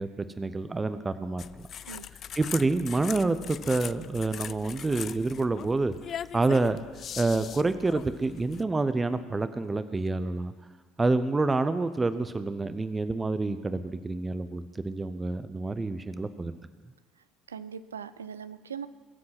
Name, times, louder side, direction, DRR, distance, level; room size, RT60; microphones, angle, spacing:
voice 1, 0.0-1.7 2.4-5.9 6.3-6.8 7.2-10.5 11.0-16.6, right 3 dB, 20° right, 12 dB, 0.8 m, -28 dB
sound 1, 1.4-8.6, left 9 dB, 45° left, 0.3 m, -40 dB
voice 2, 17.5-18.9, right 7 dB, 85° right, 14 dB, 0.5 m, -40 dB
22.0 x 7.6 x 6.0 m, 1.4 s
figure-of-eight pair, 60°, 0 cm